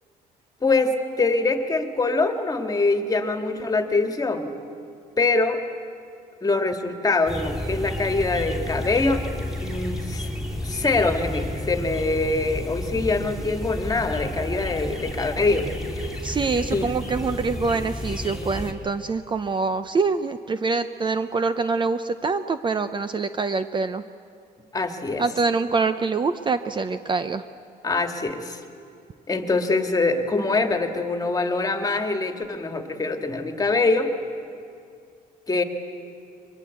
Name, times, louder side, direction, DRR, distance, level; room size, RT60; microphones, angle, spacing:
voice 1, 0.6-4.5 5.2-5.6 6.4-9.2 9.6-10.3 10.6-15.7 16.0-16.1 16.7-16.9 24.7-25.2 27.8-28.6 29.3-34.1 35.5-35.6, left 3 dB, 20° left, 6 dB, 2.0 m, -24 dB
sound 1, 7.3-18.7, left 1 dB, 5° right, 3.0 m, -31 dB
voice 2, 16.2-24.0 25.2-27.4, right 4 dB, 30° right, 11 dB, 0.7 m, -25 dB
22.5 x 22.0 x 8.3 m, 2.4 s
cardioid pair, 110°, 17 cm